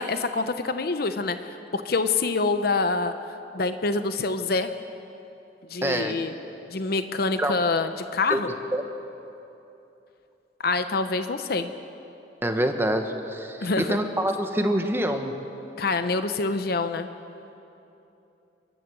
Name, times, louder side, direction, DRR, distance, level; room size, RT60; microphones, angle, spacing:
voice 1, 0.0-3.1 3.5-4.7 5.7-6.3 6.7-8.5 10.6-11.7 13.6-14.0 15.8-17.1, left 3 dB, 55° left, 9 dB, 0.8 m, -26 dB
voice 2, 5.8-6.2 7.4-7.6 8.3-8.8 12.4-15.4, right 1 dB, 15° right, 5 dB, 1.2 m, -26 dB
29.5 x 12.0 x 7.8 m, 2.9 s
head